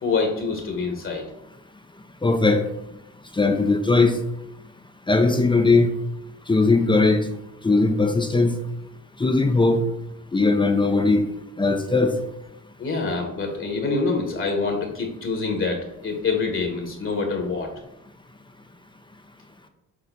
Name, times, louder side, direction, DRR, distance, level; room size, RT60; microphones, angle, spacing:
voice 1, 0.0-1.3 12.8-17.7, left 4 dB, 45° left, 3 dB, 1.3 m, -26 dB
voice 2, 2.2-2.6 3.3-4.1 5.1-5.9 6.5-7.3 7.6-8.5 9.2-9.8 10.3-11.2 11.6-12.1, left 3 dB, 15° left, 6 dB, 0.6 m, -19 dB
6.7 x 3.4 x 4.0 m, 0.84 s
cardioid pair, 90°, 30 cm